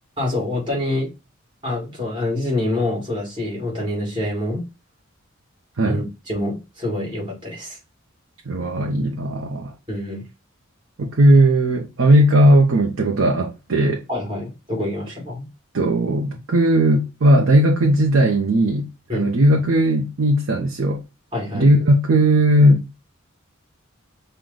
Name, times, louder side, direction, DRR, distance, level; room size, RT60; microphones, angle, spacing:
voice 1, 0.2-1.1 1.6-4.6 5.9-7.8 9.9-10.2 14.1-15.5 19.1-19.3 21.3-21.7, left 1 dB, 25° right, 1.9 m, -26 dB
voice 2, 8.5-9.7 11.0-14.0 15.7-21.0 21.5-23.0, right 1 dB, 70° right, 0.6 m, -17 dB
6.1 x 2.2 x 3.8 m
head